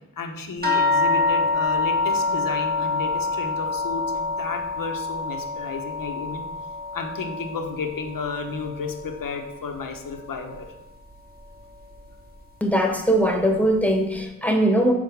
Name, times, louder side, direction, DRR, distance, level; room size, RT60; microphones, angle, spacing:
voice 1, 0.2-6.5 6.9-10.7, left 4 dB, 80° left, 4 dB, 1.1 m, -32 dB
sound 1, 0.6-9.5 9.8-10.6 11.4-11.5 11.9-12.1, left 3 dB, 25° right, 1.5 m, -26 dB
voice 2, 12.6-14.9, right 1 dB, 5° left, 3 dB, 1.2 m, -20 dB
7.6 x 4.4 x 5.9 m, 0.93 s
wide cardioid pair, 80°, 33 cm